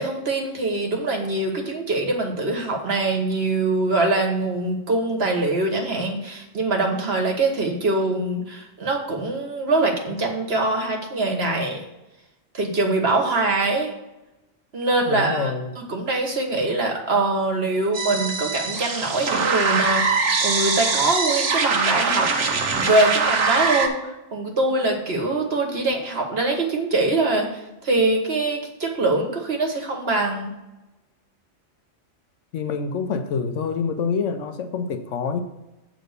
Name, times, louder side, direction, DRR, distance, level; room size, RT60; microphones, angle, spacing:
voice 1, 0.0-11.8 12.5-13.9 14.7-22.5 22.7-24.0 24.3-30.5, right 2 dB, 60° right, 2 dB, 1.6 m, -23 dB
voice 2, 15.1-15.7 32.5-35.4, left 5 dB, 85° left, 8 dB, 1.1 m, -26 dB
sound 1, 17.9-23.9, right 4 dB, 80° right, 1.3 m, -22 dB
8.0 x 3.9 x 6.6 m, 0.97 s
omnidirectional pair, 1.2 m